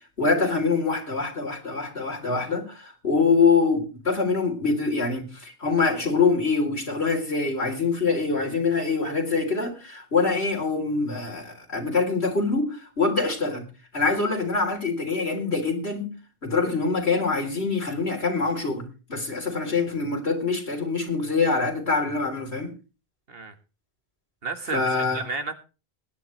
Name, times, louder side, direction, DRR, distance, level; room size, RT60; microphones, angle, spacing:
voice 1, 0.2-13.6 13.9-16.1 16.4-22.7 24.7-25.2, left 4 dB, 85° left, 4.0 m, -24 dB
voice 2, 24.4-25.5, right 4 dB, 65° right, 1.9 m, -32 dB
21.5 x 10.5 x 3.2 m
omnidirectional pair, 1.1 m